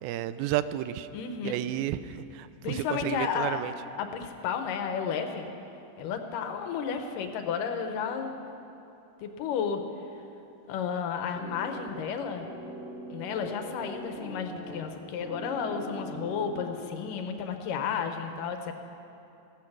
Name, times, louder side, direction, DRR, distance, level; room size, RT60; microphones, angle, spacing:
voice 1, 0.0-1.1 1.4-3.7, right 13 dB, 85° right, 14 dB, 2.4 m, -32 dB
voice 2, 1.1-1.6 2.6-3.6 4.0-5.5 6.0-8.4 9.2-9.8 10.7-12.5 13.1-18.7, left 7 dB, 75° left, 6 dB, 2.4 m, -32 dB
sound 1, 11.3-17.3, right 1 dB, ahead, 1.7 m, -42 dB
16.0 x 14.0 x 6.0 m, 3.0 s
omnidirectional pair, 4.2 m